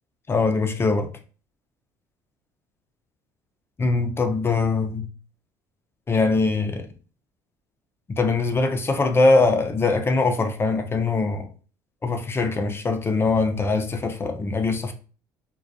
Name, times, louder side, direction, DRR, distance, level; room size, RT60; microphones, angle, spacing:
voice 1, 0.3-1.1 3.8-5.1 6.1-6.9 8.1-11.5 12.0-14.9, left 3 dB, 25° left, 0.5 m, -22 dB
2.2 x 2.2 x 2.6 m
hypercardioid pair, 70°, 10 cm